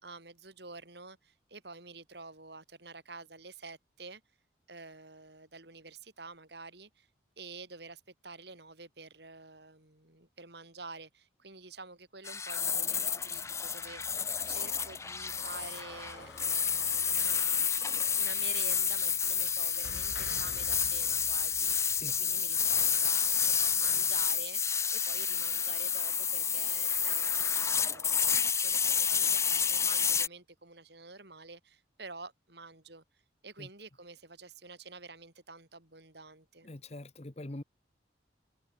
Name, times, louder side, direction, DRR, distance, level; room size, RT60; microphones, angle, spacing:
voice 1, 0.0-4.2 4.7-7.1 7.4-23.3 23.6-28.2 28.5-33.0 33.4-36.7, right 3 dB, 60° right, 4.6 m, -49 dB
sound 1, 12.2-30.3, left 7 dB, 15° left, 0.4 m, -30 dB
sound 2, 13.2-24.3, left 2 dB, 70° left, 3.1 m, -51 dB
voice 2, 36.6-37.6, left 1 dB, 35° left, 1.1 m, -43 dB
head